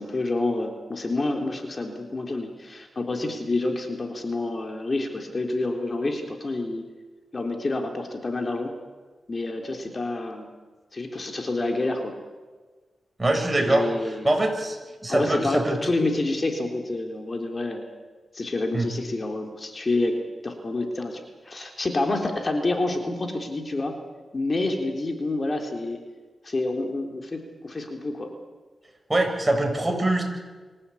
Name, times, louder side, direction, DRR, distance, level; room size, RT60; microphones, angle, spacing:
voice 1, 0.0-6.9 7.3-8.7 9.3-10.5 10.9-12.2 13.6-14.4 15.1-17.9 18.3-24.0 24.3-26.0 26.4-28.3, left 2 dB, 40° left, 3 dB, 3.7 m, -28 dB
voice 2, 13.2-13.9 14.2-14.8 15.0-15.8 18.7-18.9 29.1-30.2, right 1 dB, 25° right, 3 dB, 6.9 m, -23 dB
26.0 x 16.5 x 8.7 m, 1.4 s
cardioid pair, 60°, 0 cm